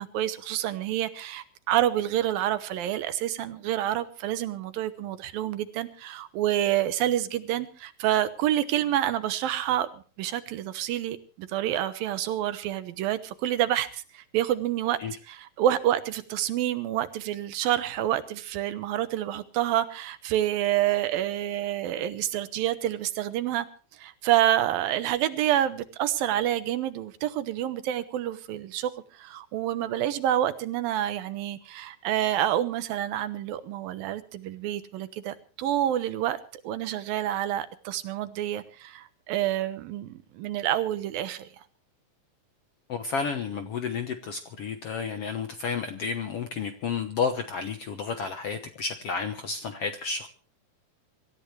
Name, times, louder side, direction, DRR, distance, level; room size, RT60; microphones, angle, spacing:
voice 1, 0.0-9.9 10.2-15.0 15.3-23.7 24.0-36.4 36.6-41.5, right 12 dB, 80° right, 12 dB, 2.9 m, -28 dB
voice 2, 42.9-50.3, left 5 dB, 65° left, 7 dB, 1.5 m, -31 dB
25.5 x 14.0 x 3.3 m, 0.38 s
omnidirectional pair, 4.1 m